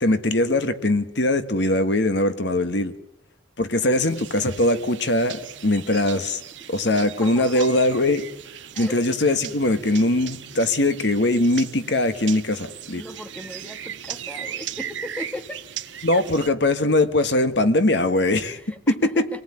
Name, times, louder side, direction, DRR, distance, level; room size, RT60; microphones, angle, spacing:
voice 1, 0.0-2.9 3.6-6.4 6.7-8.3 8.8-13.0 16.0-18.6 19.0-19.2, left 1 dB, 65° left, 1.6 m, -21 dB
sound 1, 4.0-16.5, right 9 dB, 75° right, 1.3 m, -38 dB
voice 2, 7.2-7.7 8.7-9.0 12.9-15.6 18.4-19.4, left 1 dB, 5° left, 1.5 m, -37 dB
26.5 x 19.0 x 9.8 m
head